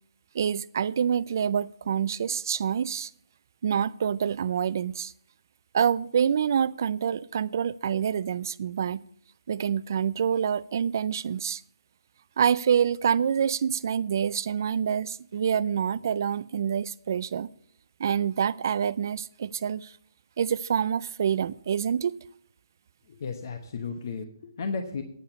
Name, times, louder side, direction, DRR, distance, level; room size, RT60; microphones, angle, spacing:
voice 1, 0.3-3.1 3.6-5.1 5.7-9.0 9.5-11.6 12.4-17.5 18.0-19.9 20.4-22.1, right 8 dB, 50° right, 0.4 m, -26 dB
voice 2, 23.1-25.0, left 4 dB, 50° left, 1.0 m, -34 dB
9.5 x 5.6 x 8.0 m
hypercardioid pair, 160°, 2 cm